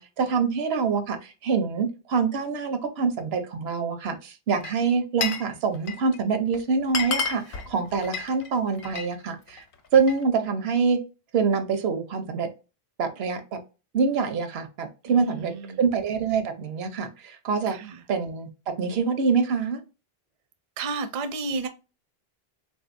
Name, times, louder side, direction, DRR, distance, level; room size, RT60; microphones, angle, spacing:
voice 1, 0.0-9.6 9.9-11.0 11.3-12.5 13.0-13.6 13.9-15.5 15.8-17.8 18.1-18.5 18.8-19.8, right 5 dB, 80° right, 0.9 m, -25 dB
Glass, 4.5-5.5 5.7-6.2 6.5-6.6 6.8-9.1 9.5-10.2, left 5 dB, 65° left, 0.8 m, -31 dB
voice 2, 15.1-15.8 17.7-18.0 20.8-21.7, right 4 dB, 55° right, 0.5 m, -32 dB
3.6 x 2.6 x 2.4 m
omnidirectional pair, 1.0 m